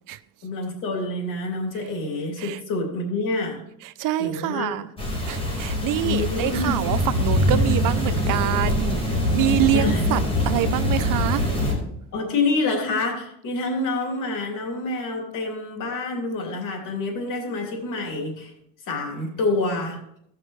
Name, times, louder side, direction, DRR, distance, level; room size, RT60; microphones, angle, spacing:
voice 1, 0.4-3.6 4.2-4.9 6.0-6.9 9.7-10.0 12.1-18.5 18.9-20.0, left 2 dB, 70° left, 3.1 m, -27 dB
voice 2, 4.0-4.9 5.3-9.0 9.3-10.2 10.5-11.5, right 13 dB, 75° right, 0.6 m, -25 dB
sound 1, 5.0-11.7, left 1 dB, 15° left, 4.5 m, -23 dB
17.0 x 5.9 x 3.2 m
cardioid pair, 85°, 33 cm